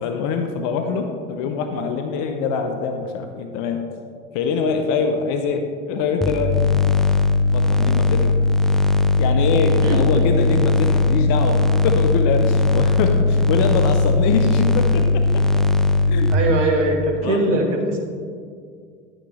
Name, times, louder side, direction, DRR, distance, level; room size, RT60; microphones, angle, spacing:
voice 1, 0.0-3.9 4.3-6.6 7.5-8.3 9.2-15.4 16.1-16.6 17.2-17.6, left 5 dB, 55° left, 6 dB, 0.9 m, -24 dB
sound 1, 6.2-16.4, left 3 dB, ahead, 0.5 m, -18 dB
voice 2, 9.8-10.2 16.3-18.0, right 2 dB, 80° right, 2 dB, 1.6 m, -21 dB
11.0 x 9.0 x 3.2 m, 2.2 s
hypercardioid pair, 75°, 37 cm